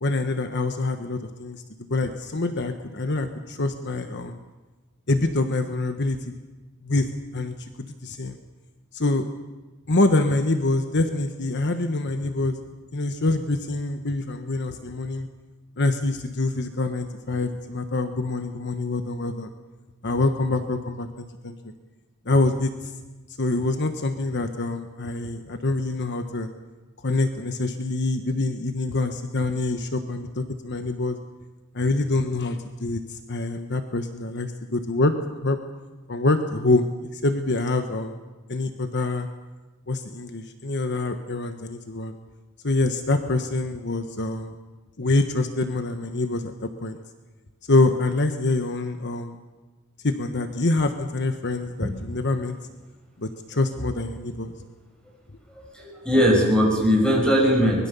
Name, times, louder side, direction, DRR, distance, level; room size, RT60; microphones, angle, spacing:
voice 1, 0.0-4.4 5.1-6.3 6.8-7.1 7.3-8.4 8.9-9.2 9.9-12.6 12.9-15.3 15.8-19.5 20.0-21.5 22.2-22.9 23.4-26.5 27.0-31.2 31.7-35.6 36.1-36.9 37.1-38.2 38.5-39.3 39.9-42.1 42.6-44.5 45.0-47.0 47.7-49.3 50.0-52.5 53.2-54.5, left 2 dB, 55° left, 7 dB, 1.2 m, -25 dB
voice 2, 55.5-57.9, equal, 5° left, -1 dB, 6.5 m, -20 dB
24.0 x 21.0 x 7.0 m, 1.2 s
head